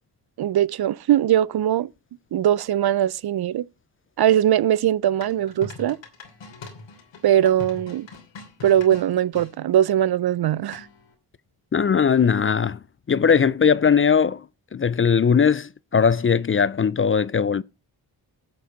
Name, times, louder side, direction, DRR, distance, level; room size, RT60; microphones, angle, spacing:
voice 1, 0.4-1.9 2.3-3.6 4.2-6.0 7.2-8.1 8.6-10.9, right 11 dB, 60° right, 0.6 m, -20 dB
sound 1, 5.2-9.5 10.7-11.1, left 3 dB, 85° left, 3.0 m, -41 dB
voice 2, 11.7-12.8 13.1-14.4 14.7-17.6, left 6 dB, 30° left, 0.5 m, -19 dB
11.5 x 6.6 x 5.1 m
cardioid pair, 60°, 43 cm